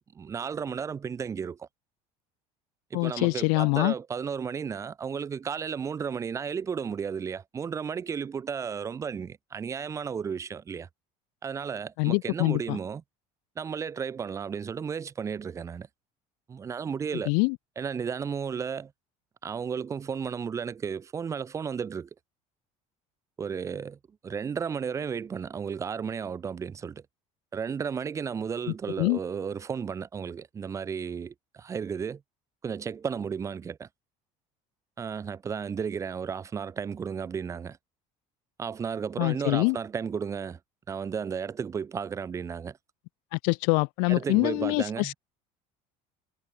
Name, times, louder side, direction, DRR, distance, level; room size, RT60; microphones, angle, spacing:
voice 1, 0.0-1.7 2.9-10.9 11.4-13.0 13.6-15.9 16.5-17.3 17.8-18.9 19.4-22.1 23.4-24.0 24.2-27.0 27.5-32.2 32.6-33.9 35.0-37.8 38.6-40.6 40.9-42.8 44.1-45.1, right 6 dB, 20° right, 6.1 m, -33 dB
voice 2, 2.9-3.9 12.0-12.8 17.3-17.6 29.0-29.2 39.2-39.8 43.3-45.1, left 40 dB or more, 85° left, 0.7 m, -25 dB
cardioid pair, 170°, 14 cm